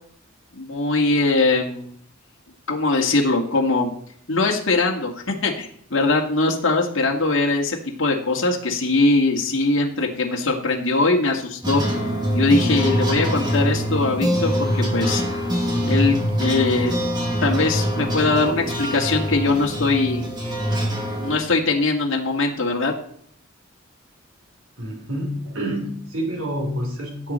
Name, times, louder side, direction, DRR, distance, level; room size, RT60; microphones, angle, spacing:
voice 1, 0.5-1.9 2.7-3.9 4.3-11.8 12.3-15.2 15.8-16.9 17.4-20.2 21.2-22.9, left 3 dB, 65° left, -1 dB, 2.0 m, -21 dB
sound 1, 11.6-21.4, equal, 20° right, 2.2 m, -24 dB
voice 2, 24.8-27.3, equal, 85° right, 1 dB, 3.5 m, -28 dB
16.5 x 7.8 x 4.4 m, 0.63 s
head